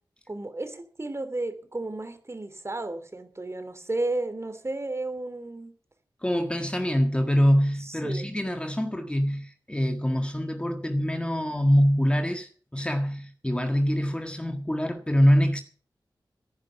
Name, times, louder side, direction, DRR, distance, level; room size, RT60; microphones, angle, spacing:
voice 1, 0.3-5.7 7.8-8.3, right 2 dB, 35° right, 2.8 m, -33 dB
voice 2, 6.2-15.6, equal, 10° left, 1.7 m, -24 dB
16.5 x 10.5 x 5.8 m
wide cardioid pair, 75°, 8 cm